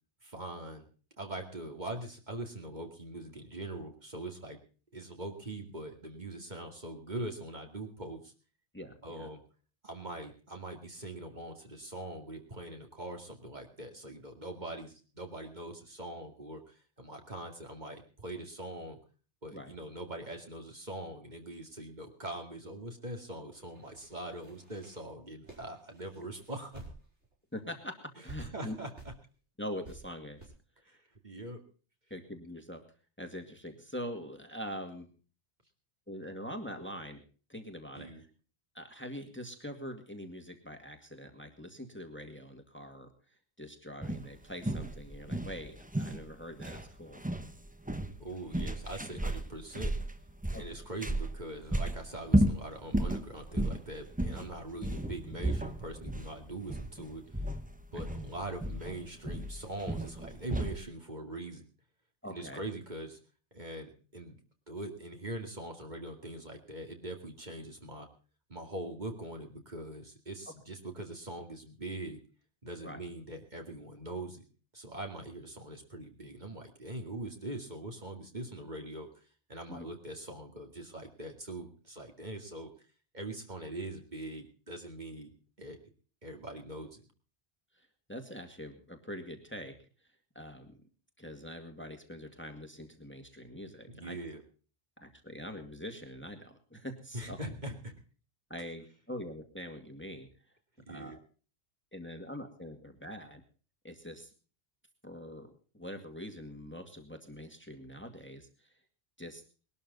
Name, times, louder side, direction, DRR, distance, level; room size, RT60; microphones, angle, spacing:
voice 1, 0.2-0.8 1.2-4.6 4.9-8.3 9.0-9.4 9.8-19.0 19.4-26.8 28.4-28.9 30.9-31.0 31.2-31.6 37.9-38.2 48.2-49.9 50.5-57.4 57.9-61.6 62.3-63.2 63.5-64.4 64.7-68.1 68.5-72.2 72.6-74.5 74.7-79.2 79.5-82.7 83.1-85.8 86.2-87.0 93.9-94.4 97.1-98.0 100.8-101.2, right 1 dB, 40° right, 3 dB, 2.4 m, -42 dB
voice 2, 8.7-9.3 19.5-19.7 27.5-28.8 29.6-30.4 32.1-32.8 33.2-35.1 36.1-37.2 37.5-38.3 38.7-43.1 43.6-47.2 50.5-50.8 62.2-62.6 72.8-73.0 79.7-79.9 87.8-89.7 90.4-90.7 91.2-94.2 95.0-97.4 98.5-100.3 100.9-101.2 101.9-103.4 103.8-104.3 105.0-108.7 109.2-109.4, equal, 10° left, 5 dB, 2.1 m, -44 dB
sound 1, 23.5-27.3 27.6-27.7 28.3-28.4 29.0-29.2 29.8-30.0 30.4-30.5, right 2 dB, 85° right, 5.4 m, -51 dB
sound 2, 44.0-60.9, right 1 dB, 10° right, 1.0 m, -34 dB
20.5 x 12.5 x 4.0 m, 0.38 s
omnidirectional pair, 1.1 m